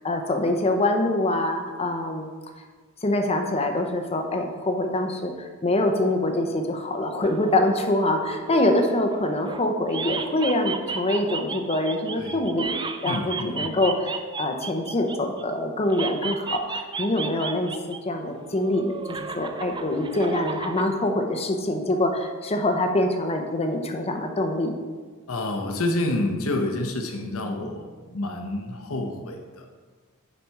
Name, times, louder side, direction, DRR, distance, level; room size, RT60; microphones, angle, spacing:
voice 1, 0.0-2.3 3.0-5.3 5.6-12.8 13.0-17.7 18.0-24.7, left 1 dB, 30° left, 4 dB, 0.8 m, -25 dB
sound 1, 7.2-9.6 9.9-15.4 15.9-18.0 18.3-20.9, right 5 dB, 20° right, 0.4 m, -34 dB
voice 2, 13.0-13.7 25.3-29.6, left 2 dB, 70° left, 3 dB, 0.9 m, -28 dB
7.0 x 5.1 x 4.6 m, 1.4 s
head